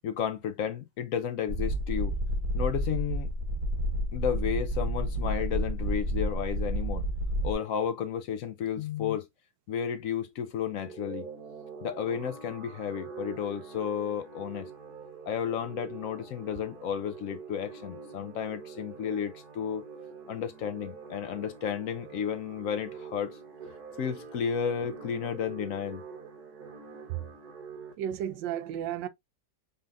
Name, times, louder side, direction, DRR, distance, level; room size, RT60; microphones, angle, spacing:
voice 1, 0.0-2.2 2.5-3.3 4.1-7.0 7.4-9.3 9.7-11.3 11.8-14.7 15.3-19.8 20.3-23.4 24.0-26.0, left 8 dB, 70° left, 0.8 m, -32 dB
sound 1, 1.5-7.5, equal, 30° right, 1.1 m, -30 dB
sound 2, 10.8-27.9, right 5 dB, 60° right, 1.6 m, -45 dB
voice 2, 28.0-29.1, right 10 dB, 85° right, 1.3 m, -33 dB
5.3 x 3.4 x 2.5 m
omnidirectional pair, 2.0 m